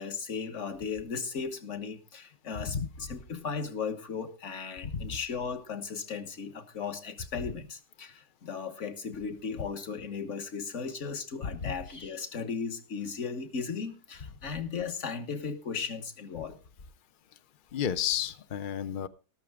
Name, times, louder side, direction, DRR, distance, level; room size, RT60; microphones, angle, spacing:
voice 1, 0.0-16.6, left 5 dB, 45° left, 8 dB, 1.5 m, -36 dB
voice 2, 4.8-5.2 11.6-11.7 17.7-19.1, left 8 dB, 80° left, 12 dB, 0.4 m, -32 dB
13.5 x 12.5 x 3.5 m, 0.31 s
omnidirectional pair, 1.9 m